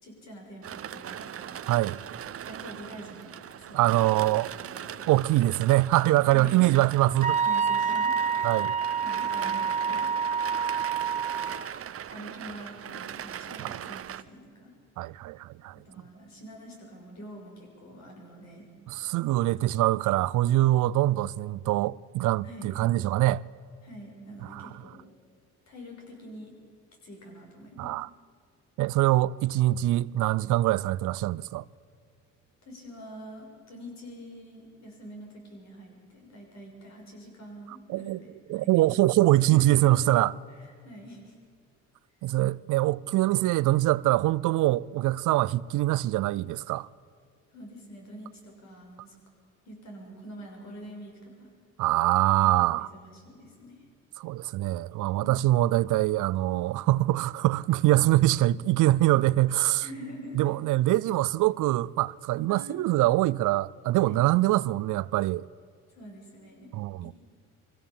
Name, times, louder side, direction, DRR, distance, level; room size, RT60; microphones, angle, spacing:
voice 1, 0.0-1.6 2.5-4.1 4.4-5.0 6.3-6.7 7.4-8.5 9.0-10.1 12.1-14.7 15.7-18.7 22.4-22.7 23.8-25.0 25.7-26.6 27.0-27.9 32.6-39.0 39.4-40.0 40.8-41.3 47.5-49.2 49.6-51.5 52.4-53.8 55.2-55.4 59.8-60.5 62.5-62.8 64.0-64.3 65.9-66.7 67.0-67.1, equal, 60° left, 6.5 m, -45 dB
sound 1, 0.6-14.2, right 9 dB, 50° right, 0.8 m, -40 dB
voice 2, 1.7-2.0 3.7-4.5 5.1-7.4 8.4-8.8 13.6-13.9 15.0-15.8 18.9-23.4 24.5-24.7 27.8-28.1 28.8-31.6 37.9-38.2 38.5-40.3 42.2-46.9 51.8-52.9 54.2-59.9 60.3-65.5 66.7-67.1, right 16 dB, 85° right, 0.5 m, -24 dB
Wind instrument woodwind instrument, 7.2-11.6, right 6 dB, 25° right, 1.0 m, -27 dB
22.5 x 16.0 x 7.3 m
cardioid pair, 90°, 30 cm